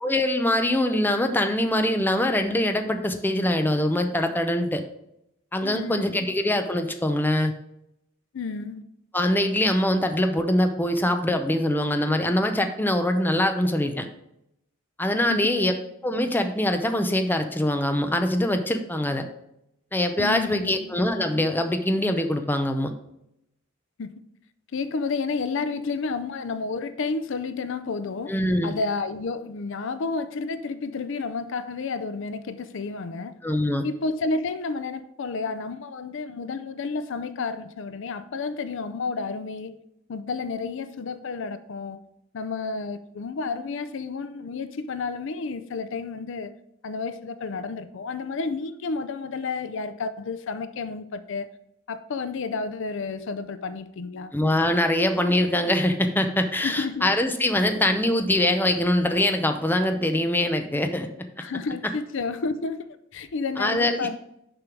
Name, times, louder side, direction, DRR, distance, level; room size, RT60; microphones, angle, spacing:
voice 1, 0.0-4.8 5.5-7.5 9.1-14.1 15.0-15.8 16.0-19.2 19.9-22.9 28.3-28.7 33.4-33.8 54.3-61.1 63.6-64.0, left 1 dB, 10° left, 0.6 m, -23 dB
voice 2, 5.6-6.2 8.3-8.8 15.3-15.5 20.2-20.9 24.0-24.2 24.7-28.3 28.6-33.4 33.8-39.8 40.1-42.0 42.3-46.5 46.8-51.5 51.9-54.3 56.6-57.1 57.6-57.7 61.4-64.2, left 4 dB, 65° left, 0.5 m, -31 dB
6.8 x 5.4 x 4.6 m
head